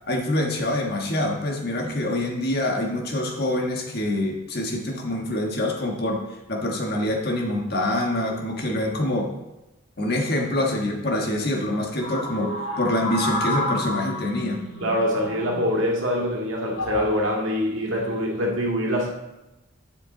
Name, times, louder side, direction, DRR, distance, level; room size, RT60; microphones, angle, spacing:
voice 1, 0.1-6.2 6.5-9.3 10.0-12.5 12.8-14.6, left 1 dB, 50° left, 1 dB, 1.4 m, -25 dB
sound 1, 12.0-15.8 16.7-17.1 18.0-18.3, left 1 dB, 90° left, 2.6 m, -30 dB
voice 2, 14.8-19.1, equal, 65° right, -1 dB, 2.0 m, -24 dB
9.7 x 7.2 x 3.9 m, 1.0 s
head